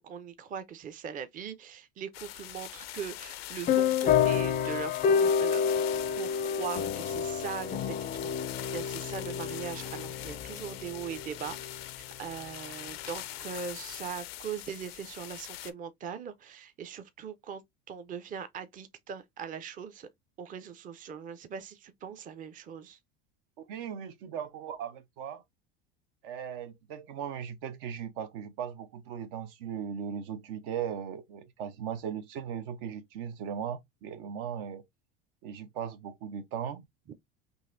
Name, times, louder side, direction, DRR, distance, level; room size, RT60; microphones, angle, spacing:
voice 1, 0.0-8.3 8.7-20.1 20.4-23.0, right 7 dB, 30° right, 0.5 m, -41 dB
sound 1, 2.1-15.7, left 14 dB, 90° left, 0.5 m, -43 dB
sound 2, 3.7-11.8, left 7 dB, 30° left, 0.4 m, -29 dB
voice 2, 23.6-25.4 26.2-34.8 35.4-36.9, right 8 dB, 70° right, 0.7 m, -38 dB
3.9 x 2.6 x 2.5 m
hypercardioid pair, 95°, 29 cm